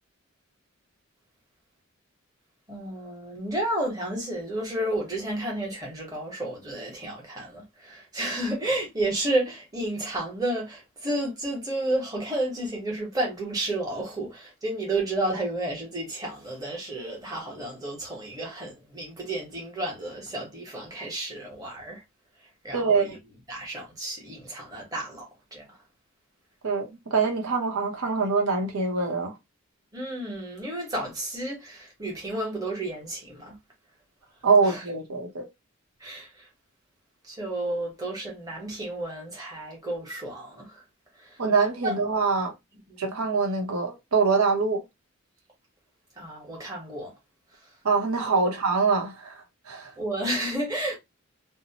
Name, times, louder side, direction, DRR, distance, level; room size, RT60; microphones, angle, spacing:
voice 1, 2.7-22.0 22.6-23.2 23.5-25.7 29.9-33.5 34.6-34.8 36.0-36.5 37.3-40.8 41.2-41.4 41.8-42.0 42.9-43.0 46.2-47.1 48.4-48.5 50.0-51.0, right 1 dB, 15° right, 1.0 m, -31 dB
voice 2, 22.7-23.1 26.6-29.3 34.4-35.5 41.4-42.5 43.0-44.8 47.8-49.9, right 4 dB, 90° right, 0.8 m, -24 dB
2.7 x 2.0 x 2.8 m
head